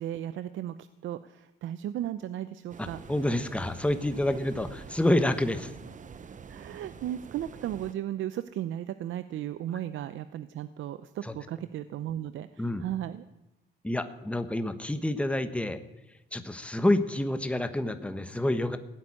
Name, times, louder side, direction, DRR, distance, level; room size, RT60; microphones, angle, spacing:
voice 1, 0.0-3.0 6.5-13.2, right 11 dB, 75° right, 13 dB, 0.7 m, -35 dB
sound 1, 2.7-7.9, right 6 dB, 40° right, 0.9 m, -46 dB
voice 2, 2.8-5.7 11.2-11.3 12.6-12.8 13.8-15.8 16.3-18.8, left 1 dB, 5° left, 10 dB, 1.2 m, -28 dB
16.5 x 8.4 x 9.9 m, 0.94 s
cardioid pair, 90°, 20 cm